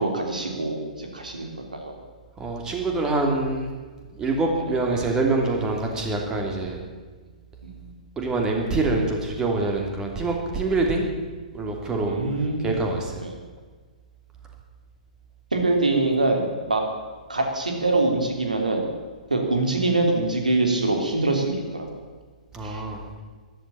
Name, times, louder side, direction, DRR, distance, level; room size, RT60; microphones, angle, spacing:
voice 1, 0.0-1.9 4.5-4.6 7.6-7.8 12.1-12.8 13.2-13.3 15.5-16.8 17.3-18.8 19.3-21.9 22.6-22.8, right 2 dB, 75° right, 3 dB, 3.3 m, -24 dB
voice 2, 2.4-3.7 4.1-6.8 8.2-11.1 11.5-12.2 12.6-13.2 22.5-23.0, right 3 dB, 15° right, 1 dB, 3.0 m, -25 dB
14.0 x 12.0 x 8.8 m, 1.4 s
figure-of-eight pair, 115°, 4 cm